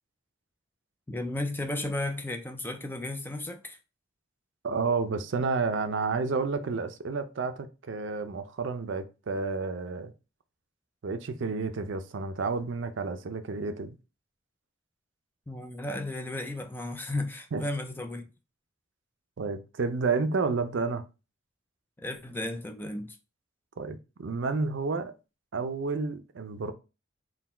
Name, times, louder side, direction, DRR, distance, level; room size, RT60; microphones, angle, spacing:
voice 1, 1.1-3.8 15.5-18.2 22.0-23.2, left 2 dB, 10° left, 0.4 m, -34 dB
voice 2, 4.6-10.1 11.0-13.9 17.5-17.6 19.4-21.0 23.8-25.1 25.5-26.7, right 4 dB, 70° right, 0.5 m, -30 dB
3.9 x 2.2 x 4.3 m
head